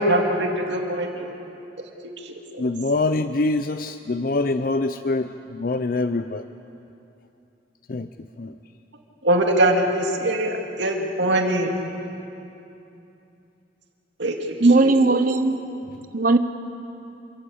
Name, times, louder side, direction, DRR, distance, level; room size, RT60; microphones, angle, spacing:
voice 1, 0.0-1.3 2.3-2.6 9.2-11.7 14.2-14.3 14.8-15.2, right 1 dB, 75° right, 2 dB, 2.3 m, -22 dB
voice 2, 2.6-6.4 7.9-8.1 8.4-8.5, left 2 dB, 50° left, 10 dB, 0.5 m, -24 dB
voice 3, 14.6-15.6 16.1-16.4, right 3 dB, 45° right, 8 dB, 0.8 m, -17 dB
27.5 x 15.0 x 8.5 m, 2.8 s
head